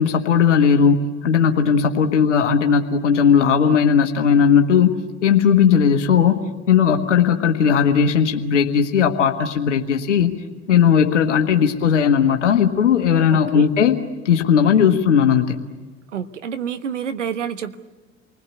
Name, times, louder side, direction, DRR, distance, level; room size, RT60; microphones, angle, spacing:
voice 1, 0.0-5.0 5.2-6.4 6.7-10.3 10.7-14.0 14.2-15.6, left 7 dB, 80° left, 4 dB, 1.5 m, -17 dB
voice 2, 13.3-13.7 16.1-17.8, right 8 dB, 80° right, 9 dB, 1.3 m, -28 dB
29.0 x 20.5 x 9.5 m, 1.3 s
figure-of-eight pair, 70°, 36 cm